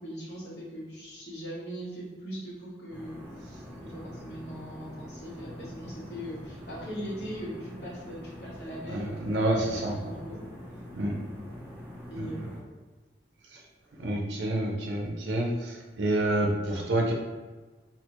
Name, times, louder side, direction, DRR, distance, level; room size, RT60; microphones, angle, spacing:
voice 1, 0.0-3.2 3.8-9.6 10.0-10.4 12.1-12.6, equal, 65° left, -6 dB, 1.1 m, -40 dB
sound 1, 2.9-12.6, equal, 10° left, 0.7 m, -44 dB
voice 2, 8.9-10.0 10.9-11.1 12.2-12.5 13.5-13.6 14.0-17.1, right 1 dB, 75° right, -1 dB, 0.5 m, -28 dB
3.9 x 2.1 x 2.9 m, 1.3 s
head